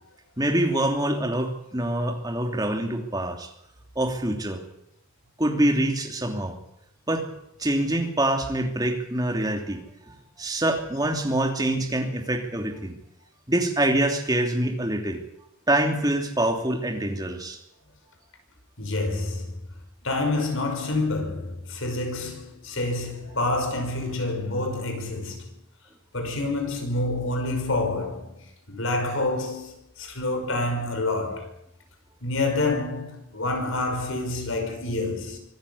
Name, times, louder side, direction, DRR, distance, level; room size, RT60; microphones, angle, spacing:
voice 1, 0.4-3.5 3.9-4.6 5.4-6.6 7.1-7.3 7.6-13.0 13.5-15.2 15.7-17.6, right 1 dB, 20° right, 2.9 m, -25 dB
voice 2, 18.8-19.5 20.0-25.6 26.1-31.5 32.2-35.4, left 2 dB, 70° left, 5.4 m, -28 dB
25.0 x 14.0 x 8.5 m
head